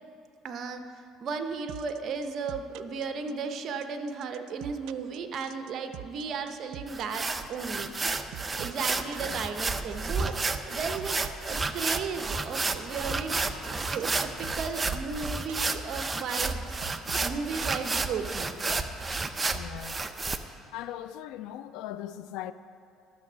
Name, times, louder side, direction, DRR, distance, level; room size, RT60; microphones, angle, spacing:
voice 1, 0.4-0.8 1.2-7.9 8.6-11.2 11.5-13.3 13.9-16.7 17.2-18.5, right 5 dB, 50° right, 0.9 m, -35 dB
sound 1, 1.7-18.5, right 14 dB, 80° right, 0.3 m, -44 dB
sound 2, 6.9-20.4, right 3 dB, 20° right, 0.6 m, -31 dB
voice 2, 19.5-20.0 20.7-22.5, left 12 dB, 80° left, 0.4 m, -40 dB
12.5 x 6.9 x 6.2 m
cardioid pair, 105°, 0 cm